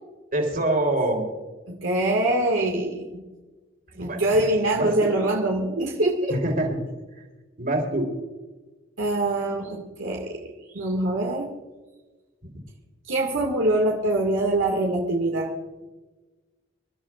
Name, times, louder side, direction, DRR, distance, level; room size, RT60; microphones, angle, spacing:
voice 1, 0.3-1.2 3.9-4.2 4.7-5.1 6.3-6.8 7.6-8.1, right 1 dB, 50° right, 2 dB, 3.9 m, -25 dB
voice 2, 1.7-3.2 4.0-6.4 9.0-11.5 13.1-15.5, right 1 dB, 75° right, -1 dB, 2.2 m, -24 dB
27.5 x 13.0 x 2.5 m, 1.2 s
head